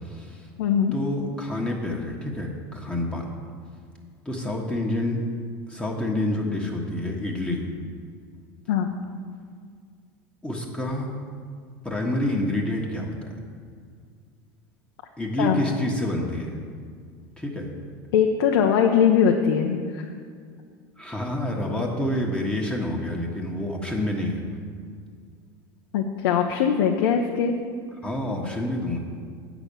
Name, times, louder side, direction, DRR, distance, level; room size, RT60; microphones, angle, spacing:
voice 1, 0.0-0.5 0.9-3.3 4.2-5.2 5.7-7.6 10.4-11.1 11.8-13.3 15.2-16.6 17.4-17.7 21.0-24.4 28.0-29.0, left 1 dB, 10° left, -1 dB, 1.3 m, -28 dB
voice 2, 0.6-0.9 8.7-9.0 15.4-15.6 18.1-20.1 25.9-27.6, left 7 dB, 75° left, 2 dB, 0.8 m, -21 dB
8.3 x 6.0 x 6.9 m, 2.1 s
supercardioid pair, 105°, 12 cm